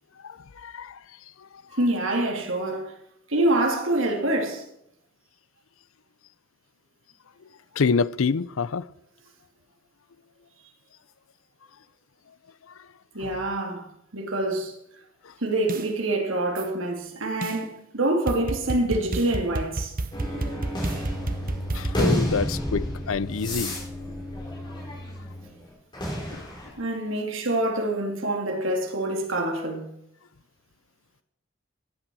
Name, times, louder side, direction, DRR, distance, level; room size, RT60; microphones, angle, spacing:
voice 1, 0.6-1.0 7.8-8.8 13.2-13.4 21.7-23.8 26.3-26.5, left 5 dB, 80° left, 0.5 m, -26 dB
voice 2, 1.8-2.9 3.3-4.7 13.1-13.9 14.1-14.7 15.4-19.9 26.8-29.9, right 1 dB, 75° right, 2.6 m, -26 dB
sound 1, 15.7-15.9 16.6-16.7 17.4-17.6 18.3-22.1, right 2 dB, 45° right, 0.8 m, -30 dB
sound 2, 20.1-25.5 25.9-26.7, equal, 20° left, 4.5 m, -30 dB
15.0 x 8.9 x 6.2 m
head